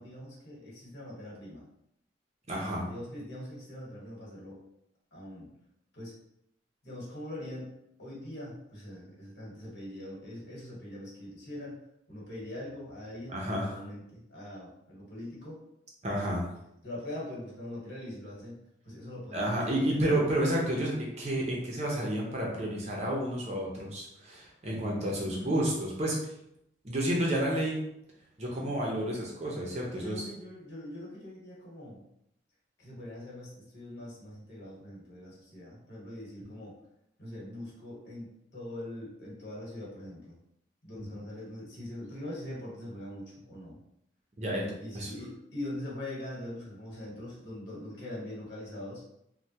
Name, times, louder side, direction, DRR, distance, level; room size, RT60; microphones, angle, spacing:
voice 1, 0.0-1.6 2.8-4.6 5.1-5.5 5.9-6.1 6.8-7.7 8.0-11.8 12.1-13.4 13.7-15.6 16.8-18.6 18.8-19.9 25.3-25.6 29.9-32.0 32.8-36.8 37.2-40.3 40.8-43.8 44.8-49.0, left 1 dB, 60° left, -5 dB, 1.3 m, -42 dB
voice 2, 2.5-2.9 13.3-13.8 16.0-16.4 19.3-26.2 26.8-27.8 28.4-30.2 41.0-41.2 44.4-45.1, right 1 dB, 35° right, -3 dB, 0.6 m, -30 dB
3.3 x 2.2 x 2.8 m, 0.79 s
head